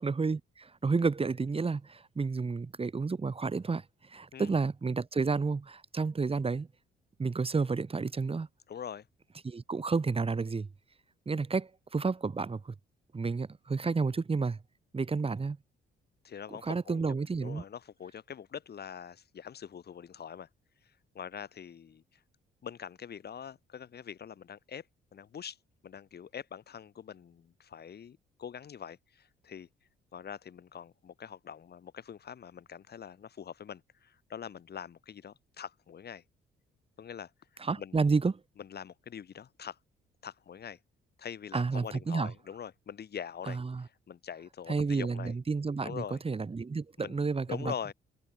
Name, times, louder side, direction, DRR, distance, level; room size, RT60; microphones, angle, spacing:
voice 1, 0.0-6.7 7.2-8.5 9.4-10.7 11.3-12.7 13.1-14.6 14.9-15.6 16.6-17.6 37.6-38.3 41.5-42.3 43.5-43.8 44.7-47.7, right 4 dB, 30° right, 3.0 m, -31 dB
voice 2, 8.7-9.1 16.2-17.0 17.4-20.5 21.1-22.2 22.6-24.9 25.1-25.6 25.8-29.7 30.1-36.2 37.0-38.0 38.6-39.8 40.2-40.8 41.2-43.6 44.1-45.3 45.8-46.2 47.0-47.2 47.5-47.9, left 8 dB, 55° left, 5.3 m, -43 dB
cardioid pair, 90°, 20 cm